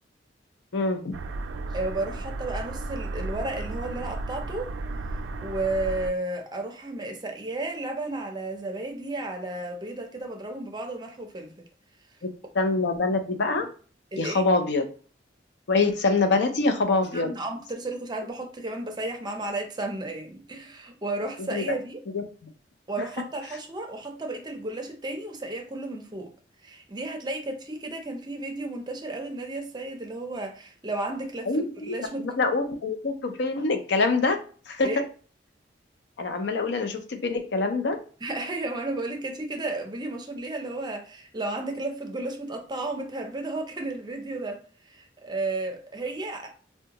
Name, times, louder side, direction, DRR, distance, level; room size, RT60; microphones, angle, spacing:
voice 1, 0.7-1.1 12.5-13.7 14.2-14.8 15.7-17.3 21.5-21.6 22.1-22.2 31.5-34.4 34.7-35.0 36.2-38.0, left 3 dB, 70° left, 0.5 m, -25 dB
sound 1, 1.1-6.1, right 2 dB, 90° right, 0.3 m, -34 dB
voice 2, 1.7-4.7 5.4-11.7 14.1-14.4 17.1-22.0 22.9-26.3 26.6-31.5 31.8-32.3 34.8-35.0 38.2-46.5, right 2 dB, 25° right, 0.6 m, -33 dB
3.5 x 2.2 x 2.9 m
head